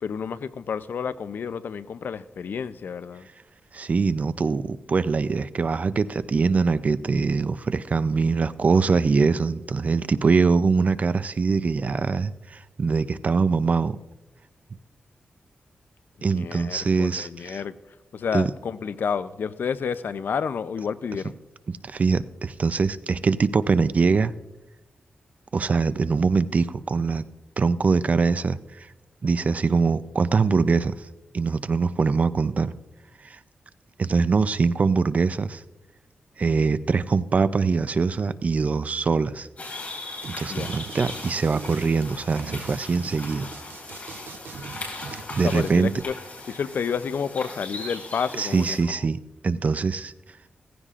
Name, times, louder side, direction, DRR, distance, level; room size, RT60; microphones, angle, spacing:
voice 1, 0.0-3.3 16.2-17.7 18.1-21.4 40.5-40.7 45.4-46.1 46.5-49.1, left 6 dB, 70° left, 0.5 m, -30 dB
voice 2, 3.7-14.0 16.2-17.6 18.3-18.5 21.7-24.3 25.5-27.2 27.6-28.9 29.2-31.0 31.3-32.7 33.2-33.4 34.0-35.6 36.4-39.5 40.3-43.5 45.4-45.9 48.4-50.1, right 4 dB, 45° right, 0.4 m, -23 dB
sound 1, 39.6-48.8, left 2 dB, 45° left, 4.6 m, -38 dB
sound 2, 40.2-40.3 40.6-46.0, right 6 dB, 85° right, 0.7 m, -40 dB
17.0 x 15.0 x 2.5 m
wide cardioid pair, 110°, 3 cm